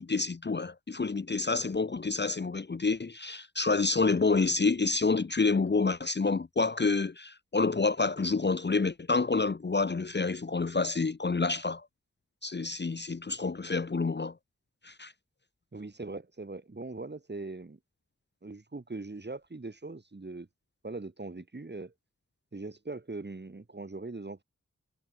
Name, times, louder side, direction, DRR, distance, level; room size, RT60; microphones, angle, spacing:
voice 1, 0.0-11.9 12.4-14.3 14.8-15.1, left 4 dB, 35° left, 0.7 m, -28 dB
voice 2, 15.7-17.8 18.4-20.5 20.8-21.9 22.5-24.4, right 3 dB, 35° right, 1.6 m, -41 dB
wide cardioid pair, 60°, 31 cm